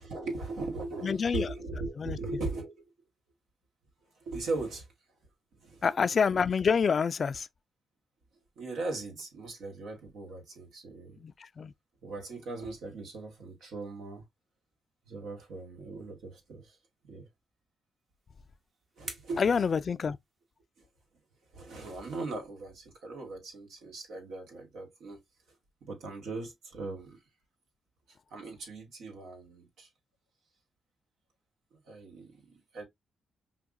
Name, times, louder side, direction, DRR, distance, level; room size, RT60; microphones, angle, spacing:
voice 1, 0.0-2.8 4.2-4.9 5.6-5.9 8.6-11.2 12.0-14.2 15.1-16.7 17.1-17.3 19.0-19.5 21.5-25.2 25.8-27.2 28.3-29.9 31.7-32.8, right 3 dB, 80° right, 1.6 m, -39 dB
voice 2, 1.0-1.5 2.0-2.2 5.8-7.5 11.2-11.7 19.4-20.2, left 6 dB, 50° left, 0.3 m, -27 dB
sound 1, 18.0-20.7, right 2 dB, 50° right, 1.5 m, -49 dB
5.7 x 2.2 x 2.6 m
supercardioid pair, 60°, 0 cm